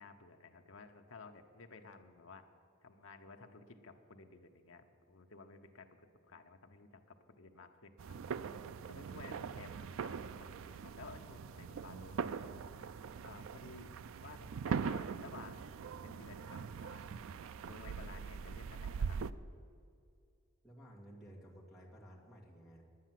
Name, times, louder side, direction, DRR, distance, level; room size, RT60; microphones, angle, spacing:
voice 1, 0.0-2.5 2.8-6.0 6.3-8.2 8.9-12.7 13.2-17.0 17.6-19.2, left 4 dB, 65° left, 6 dB, 0.9 m, -55 dB
sound 1, 8.0-19.3, right 6 dB, 70° right, 0.3 m, -42 dB
voice 2, 20.6-22.8, equal, ahead, -2 dB, 2.1 m, -55 dB
10.0 x 9.5 x 7.6 m, 2.4 s
head